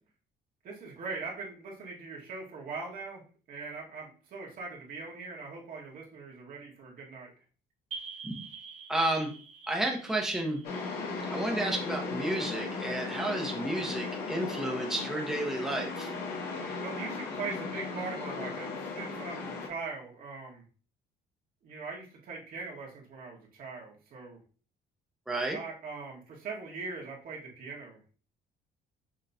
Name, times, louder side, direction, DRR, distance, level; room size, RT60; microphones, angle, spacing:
voice 1, 0.6-3.2 3.5-7.3 11.6-11.8 16.8-20.6 21.6-24.4 25.5-28.0, right 4 dB, 60° right, -2 dB, 1.7 m, -41 dB
sound 1, 7.9-12.3, right 5 dB, 35° right, 1.3 m, -47 dB
voice 2, 8.9-9.3 9.7-10.6 11.3-16.1 25.3-25.6, right 1 dB, ahead, 0 dB, 0.9 m, -31 dB
sound 2, 10.6-19.7, left 4 dB, 80° left, 1.6 m, -36 dB
6.5 x 3.0 x 2.7 m, 0.38 s
cardioid pair, 110°, 17 cm